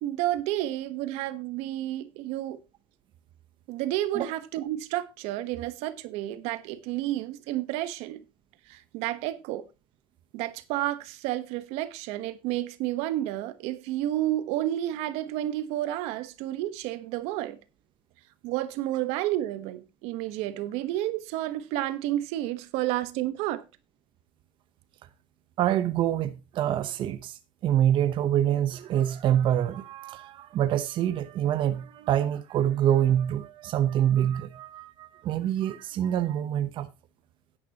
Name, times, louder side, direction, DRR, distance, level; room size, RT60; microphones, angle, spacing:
voice 1, 0.0-2.6 3.7-8.2 8.7-9.6 10.3-17.6 18.4-23.6, right 14 dB, 75° right, 1.2 m, -31 dB
voice 2, 25.6-36.9, right 11 dB, 50° right, 0.9 m, -26 dB
11.5 x 9.9 x 2.9 m
cardioid pair, 130°, 11 cm